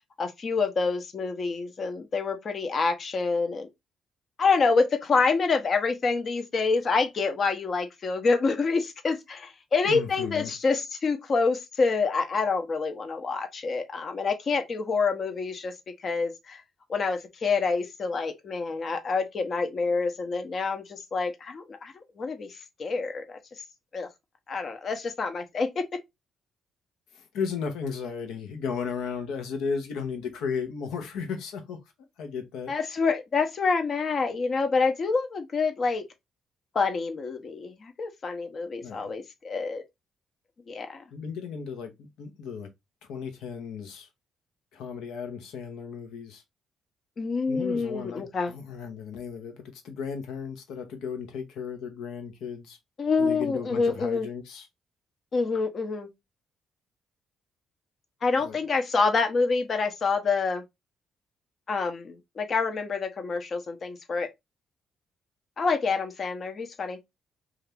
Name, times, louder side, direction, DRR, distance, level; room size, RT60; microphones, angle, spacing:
voice 1, 0.2-3.7 4.4-15.7 16.0-16.6 16.9-23.4 23.9-24.1 24.5-25.8 32.7-36.1 36.7-39.8 40.7-41.0 47.2-48.5 53.0-54.3 55.3-56.1 58.2-60.6 61.7-64.3 65.6-67.0, left 4 dB, 50° left, 0.7 m, -27 dB
voice 2, 9.8-10.5 27.1-31.8 32.2-32.7 38.8-39.1 41.1-42.7 43.1-44.1 44.7-46.4 47.5-52.8 53.2-54.7 58.4-58.6, left 6 dB, 85° left, 0.8 m, -35 dB
2.8 x 2.4 x 3.3 m
cardioid pair, 90°, 0 cm